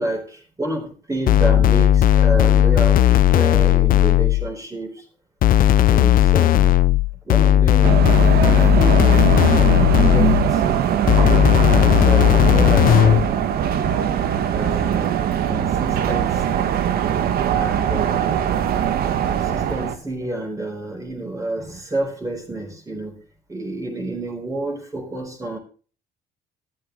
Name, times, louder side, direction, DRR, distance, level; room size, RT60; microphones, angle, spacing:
voice 1, 0.0-5.1 5.9-6.8 7.2-11.0 11.7-13.6 14.2-15.2 15.5-16.9 17.5-18.4 19.3-23.2 23.5-25.6, right 1 dB, 20° right, 1 dB, 5.4 m, -30 dB
sound 1, 1.3-4.5 5.4-10.6 11.1-13.3, left 11 dB, 55° left, 0.7 m, -15 dB
sound 2, 7.8-20.0, right 9 dB, 65° right, 1.6 m, -21 dB
14.0 x 11.5 x 3.4 m, 0.39 s
cardioid pair, 110°, 17 cm